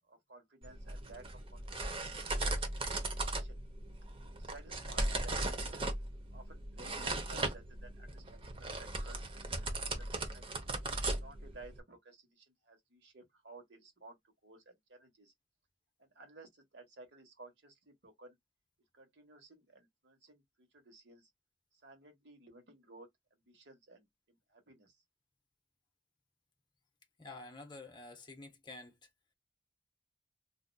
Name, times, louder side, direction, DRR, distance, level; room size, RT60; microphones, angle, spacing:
voice 1, 0.1-1.2 1.5-3.6 4.3-5.4 5.7-5.9 6.3-10.6 11.2-14.2 14.4-15.3 16.0-18.3 18.9-21.3 21.7-25.0, right 2 dB, 70° right, 1.3 m, -56 dB
sound 1, 0.6-11.8, right 2 dB, 30° right, 0.8 m, -38 dB
voice 2, 27.2-29.1, left 2 dB, 25° left, 0.8 m, -49 dB
4.1 x 2.7 x 2.2 m
head